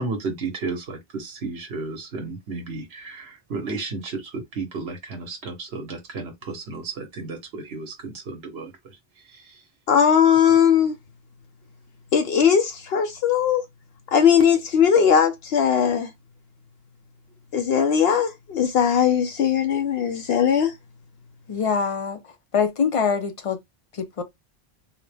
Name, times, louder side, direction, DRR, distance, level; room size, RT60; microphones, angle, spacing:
voice 1, 0.0-8.7 9.3-9.6, right 3 dB, 85° right, 1.2 m, -33 dB
voice 2, 9.9-10.9 12.1-13.6 14.1-16.1 17.5-20.7, left 8 dB, 75° left, 0.8 m, -19 dB
voice 3, 21.5-22.2 22.5-23.6 23.9-24.2, left 6 dB, 40° left, 0.5 m, -24 dB
3.7 x 2.1 x 3.3 m
omnidirectional pair, 1.0 m